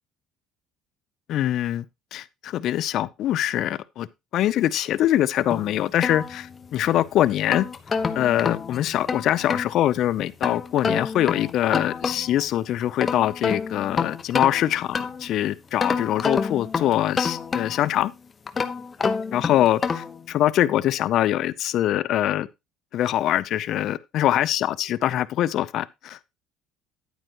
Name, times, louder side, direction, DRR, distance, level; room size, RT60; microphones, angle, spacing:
voice 1, 1.3-1.8 2.1-4.1 4.3-7.7 8.1-18.1 19.3-22.5 22.9-26.2, left 12 dB, 60° left, 0.6 m, -23 dB
sound 1, 5.5-6.8 7.3-9.7 10.4-12.4 12.8-15.3 15.8-18.0 18.5-20.2, left 5 dB, 35° left, 1.0 m, -28 dB
10.5 x 9.0 x 3.0 m
supercardioid pair, 80°, 0 cm